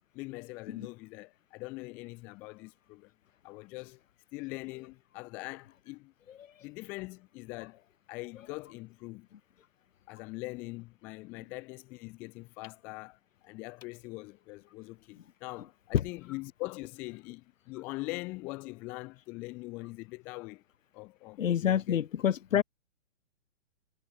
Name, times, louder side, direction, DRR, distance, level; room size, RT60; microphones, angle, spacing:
voice 1, 0.1-3.1 3.4-4.0 4.3-6.1 6.6-9.3 10.1-20.6 20.9-22.0 22.5-22.6, left 24 dB, 5° left, 0.6 m, -42 dB
voice 2, 21.4-22.6, left 9 dB, 90° left, 1.0 m, -27 dB
hypercardioid pair, 175°, 38 cm